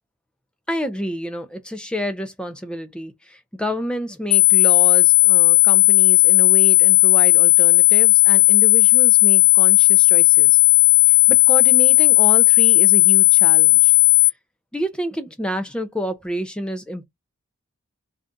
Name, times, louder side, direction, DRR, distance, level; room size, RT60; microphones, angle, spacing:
voice 1, 0.7-10.6 11.1-14.0 14.7-17.0, equal, 5° left, 0.5 m, -29 dB
sound 1, 4.3-14.3, left 22 dB, 90° left, 0.3 m, -14 dB
2.7 x 2.5 x 3.5 m
head